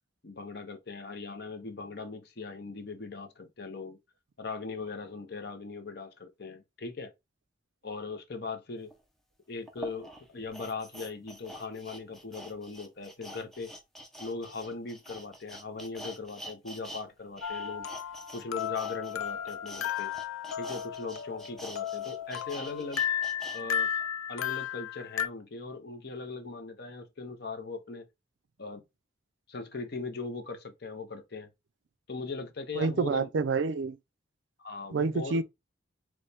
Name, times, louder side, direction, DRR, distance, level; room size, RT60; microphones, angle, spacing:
voice 1, 0.2-4.0 4.4-7.1 7.8-8.9 9.5-13.7 14.2-17.9 18.3-20.1 20.6-23.0 23.5-23.9 24.3-28.1 28.6-28.8 29.5-31.5 32.1-33.3 34.6-35.4, left 4 dB, 55° left, 0.8 m, -39 dB
sound 1, 8.9-9.0 9.7-17.0 17.3-23.6 24.0-24.1, equal, ahead, 0.7 m, -46 dB
sound 2, 17.4-25.3, left 9 dB, 90° left, 0.4 m, -34 dB
voice 2, 32.7-34.0 34.9-35.4, right 4 dB, 65° right, 0.4 m, -28 dB
4.1 x 3.1 x 3.4 m
head